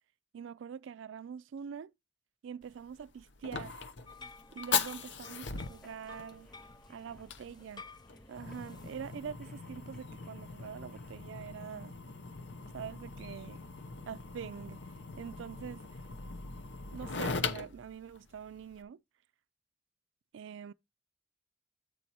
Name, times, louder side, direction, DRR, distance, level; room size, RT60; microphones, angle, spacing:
voice 1, 0.3-1.9 2.4-3.8 4.5-6.5 6.9-7.9 8.3-12.0 12.7-13.6 14.1-14.8 15.2-16.0 16.9-19.0 20.3-20.7, right 7 dB, 80° right, 0.3 m, -44 dB
Fire, 2.6-18.8, left 5 dB, 70° left, 0.8 m, -40 dB
sound 1, 4.1-9.2, left 4 dB, 20° left, 0.5 m, -53 dB
sound 2, 5.7-11.1, equal, 5° left, 1.8 m, -62 dB
8.3 x 4.6 x 4.2 m
head